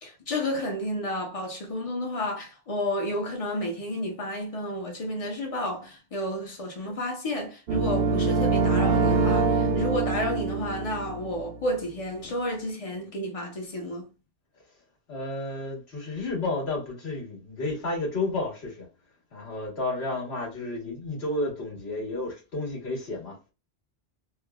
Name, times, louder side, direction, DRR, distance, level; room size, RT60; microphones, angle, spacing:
voice 1, 0.0-14.1, left 1 dB, 40° left, 0.8 m, -31 dB
sound 1, 7.7-11.6, right 4 dB, 65° right, 0.7 m, -24 dB
voice 2, 15.1-18.9 19.3-23.4, left 2 dB, 85° left, 1.6 m, -31 dB
3.3 x 2.0 x 2.3 m
omnidirectional pair, 1.0 m